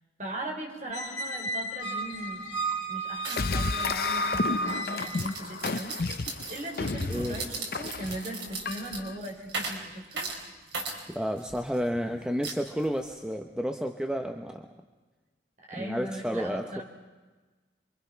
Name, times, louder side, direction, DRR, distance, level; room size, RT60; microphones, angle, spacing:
voice 1, 0.2-2.5 2.9-10.3 15.7-16.8, right 1 dB, 40° right, 1 dB, 4.8 m, -39 dB
Squeak, 0.9-5.4, right 2 dB, 90° left, 2.3 m, -33 dB
sound 1, 2.1-2.2 2.5-2.8 3.2-11.8 12.4-13.1, right 3 dB, 70° right, 4.3 m, -38 dB
sound 2, 3.4-9.2, left 3 dB, 50° left, 0.7 m, -32 dB
voice 2, 11.1-14.7 15.8-16.8, equal, 5° right, 4 dB, 0.9 m, -31 dB
28.0 x 24.0 x 5.9 m, 1.3 s
head